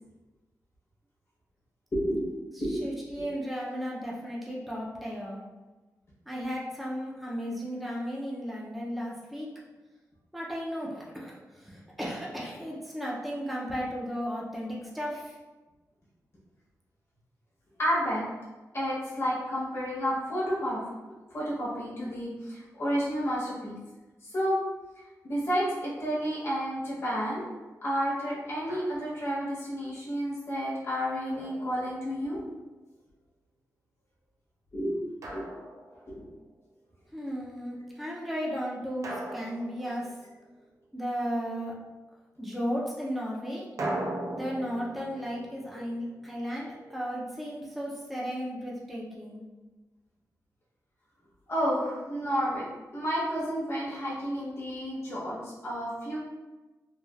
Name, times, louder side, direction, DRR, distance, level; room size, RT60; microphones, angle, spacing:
voice 1, 1.9-2.2 2.6-2.8 3.1-3.2 17.8-18.2 18.7-20.8 21.3-23.8 24.2-24.6 25.2-27.4 27.8-32.4 34.7-34.9 35.3-35.4 36.1-36.3 51.5-52.6 52.9-56.2, equal, 40° left, -8 dB, 0.9 m, -30 dB
voice 2, 2.5-5.4 6.3-9.5 10.3-15.4 37.1-40.1 40.9-41.8 42.4-43.7 44.3-49.4, equal, ahead, -5 dB, 0.5 m, -35 dB
Drum, 28.7-29.4 31.4-32.4 35.2-36.4 39.0-40.7 43.8-46.8, right 1 dB, 55° right, 0.4 m, -39 dB
3.2 x 2.3 x 2.3 m, 1.2 s
wide cardioid pair, 110°, 6 cm